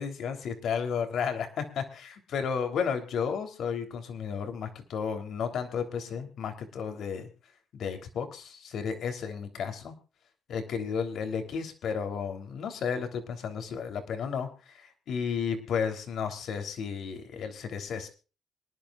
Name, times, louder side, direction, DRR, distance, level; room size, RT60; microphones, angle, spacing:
voice 1, 0.0-7.3 7.7-9.9 10.5-18.1, left 6 dB, 70° left, 7 dB, 3.3 m, -33 dB
26.0 x 11.0 x 2.4 m, 0.34 s
cardioid pair, 90°, 0 cm